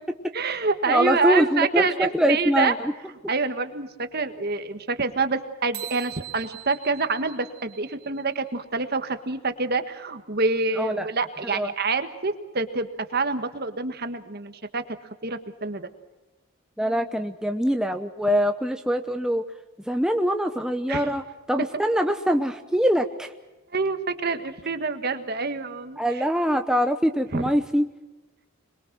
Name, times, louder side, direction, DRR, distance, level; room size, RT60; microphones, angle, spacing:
voice 1, 0.3-2.7 3.3-15.0 15.2-15.9 20.9-21.1 23.7-26.0 27.3-27.4, right 4 dB, 45° right, 8 dB, 1.6 m, -27 dB
voice 2, 0.9-2.9 10.7-11.1 11.5-11.7 16.8-19.4 19.9-23.3 26.0-27.9, equal, 5° right, 5 dB, 0.8 m, -23 dB
sound 1, 5.7-8.4, right 15 dB, 80° right, 2.0 m, -41 dB
26.5 x 22.0 x 6.1 m, 1.1 s
head